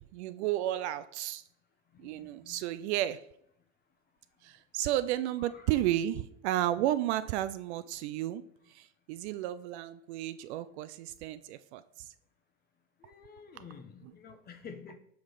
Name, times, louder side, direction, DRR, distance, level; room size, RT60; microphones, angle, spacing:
voice 1, 0.0-1.4 2.0-3.3 4.4-8.4 8.7-12.1, right 13 dB, 60° right, 14 dB, 0.5 m, -33 dB
voice 2, 1.9-2.6 5.4-5.8 13.0-15.0, left 6 dB, 25° left, 8 dB, 0.9 m, -50 dB
7.1 x 3.7 x 4.8 m, 0.72 s
hypercardioid pair, 95°, 39 cm